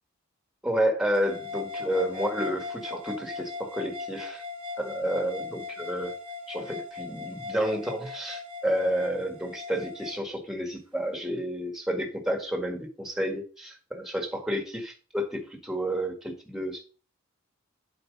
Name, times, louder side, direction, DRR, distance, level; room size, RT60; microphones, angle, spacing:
voice 1, 0.6-4.4 4.8-6.1 6.5-16.8, equal, ahead, 3 dB, 1.6 m, -30 dB
sound 1, 1.1-10.2, left 4 dB, 25° right, 1.3 m, -39 dB
7.9 x 4.3 x 6.4 m, 0.36 s
head